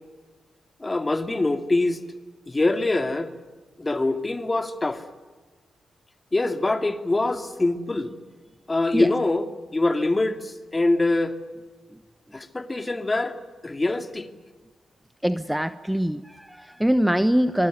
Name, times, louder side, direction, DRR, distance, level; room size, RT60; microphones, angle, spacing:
voice 1, 0.8-2.0 2.5-3.3 3.8-5.0 6.3-8.1 8.7-11.4 12.3-13.4 13.6-14.3, left 2 dB, 30° left, 9 dB, 2.5 m, -24 dB
voice 2, 15.2-17.7, equal, 5° right, 13 dB, 1.1 m, -23 dB
25.5 x 23.5 x 9.6 m, 1.3 s
supercardioid pair, 50°, 0 cm